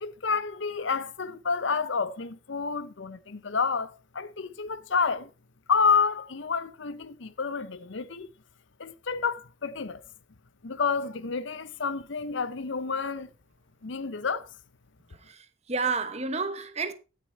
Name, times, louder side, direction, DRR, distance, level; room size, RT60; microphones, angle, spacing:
voice 1, 0.0-5.3 5.7-8.3 8.8-10.0 10.6-13.3 13.8-14.5, left 5 dB, 65° left, 0.7 m, -29 dB
voice 2, 15.3-16.9, right 4 dB, 30° right, 1.1 m, -30 dB
16.0 x 6.8 x 4.5 m
head